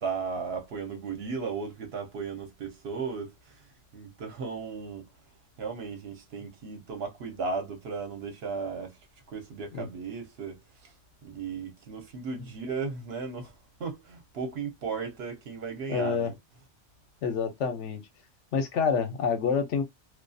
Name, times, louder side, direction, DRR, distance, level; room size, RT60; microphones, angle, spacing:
voice 1, 0.0-3.6 3.9-5.1 5.6-9.0 9.3-10.9 11.2-13.5 13.8-16.3, right 5 dB, 60° right, 0.9 m, -35 dB
voice 2, 15.9-16.3 17.2-18.0 18.5-19.8, left 6 dB, 75° left, 1.0 m, -27 dB
2.3 x 2.3 x 2.5 m
omnidirectional pair, 1.3 m